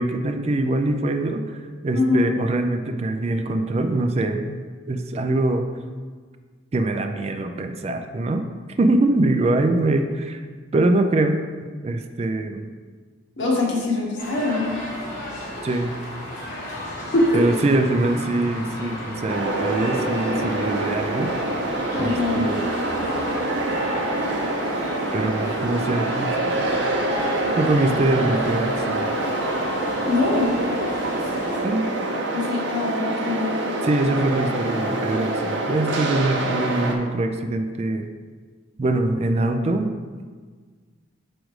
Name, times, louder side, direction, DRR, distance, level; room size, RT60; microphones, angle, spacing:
voice 1, 0.0-4.6 4.9-5.7 6.7-8.5 8.8-10.4 10.7-11.4 11.8-12.7 15.6-16.0 17.3-21.3 22.0-22.7 25.1-26.7 27.6-29.1 31.6-31.8 33.8-38.1 38.8-39.9, right 2 dB, 35° right, 7 dB, 0.3 m, -23 dB
voice 2, 1.9-2.3 13.4-14.7 17.1-17.3 21.9-22.5 30.1-30.5 32.3-33.5, left 3 dB, 75° left, -2 dB, 1.3 m, -22 dB
sound 1, 14.2-31.6, equal, 45° left, 1.8 m, -34 dB
sound 2, 19.3-36.9, right 2 dB, 70° right, 0.7 m, -26 dB
6.2 x 5.1 x 3.1 m, 1.5 s
head